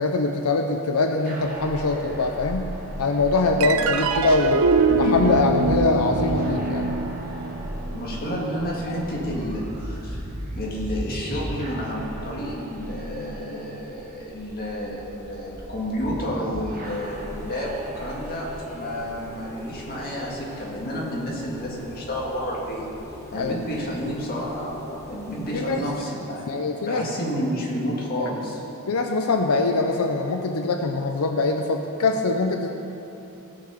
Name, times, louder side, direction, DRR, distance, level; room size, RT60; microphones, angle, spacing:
voice 1, 0.0-2.7 3.0-4.6 5.0-7.0 23.3-23.5 25.5-25.8 26.5-27.0 28.2-28.3 28.9-32.7, left 3 dB, 90° left, 4 dB, 0.6 m, -23 dB
sound 1, 1.2-20.7, equal, 40° right, 1.3 m, -36 dB
sound 2, 3.6-10.3, right 3 dB, 70° right, 0.5 m, -25 dB
voice 2, 7.9-10.2 10.5-18.5 18.7-22.9 23.3-26.4 26.9-28.6, equal, 45° left, -4 dB, 2.1 m, -30 dB
sound 3, 16.8-25.9, left 1 dB, 10° left, 1.0 m, -41 dB
16.5 x 5.7 x 5.0 m, 2.9 s
head